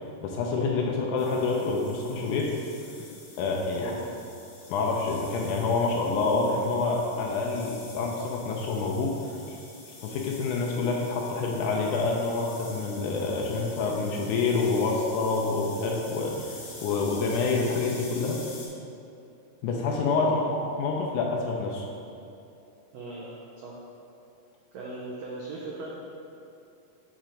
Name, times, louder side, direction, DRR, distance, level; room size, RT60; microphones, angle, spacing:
voice 1, 0.2-2.5 3.4-3.9 4.7-9.6 10.0-18.4 19.6-21.9, left 3 dB, 80° left, -1 dB, 1.9 m, -27 dB
sound 1, 1.2-18.7, left 3 dB, 60° left, 1.7 m, -47 dB
voice 2, 3.7-4.1 20.2-20.5 22.9-23.8 24.7-25.9, right 2 dB, 85° right, -4 dB, 1.4 m, -39 dB
7.4 x 3.0 x 5.0 m, 2.6 s
omnidirectional pair, 3.8 m